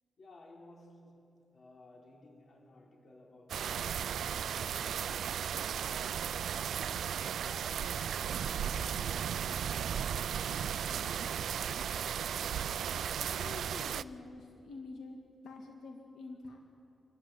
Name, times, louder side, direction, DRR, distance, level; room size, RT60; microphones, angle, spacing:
voice 1, 0.2-6.7 7.4-12.9, left 2 dB, 40° left, -1 dB, 4.4 m, -58 dB
sound 1, 3.5-14.0, right 8 dB, 70° right, 0.4 m, -35 dB
voice 2, 13.1-15.2 15.4-16.6, left 3 dB, 85° left, 2 dB, 2.2 m, -47 dB
28.0 x 14.0 x 9.3 m, 2.6 s
wide cardioid pair, 175°, 0 cm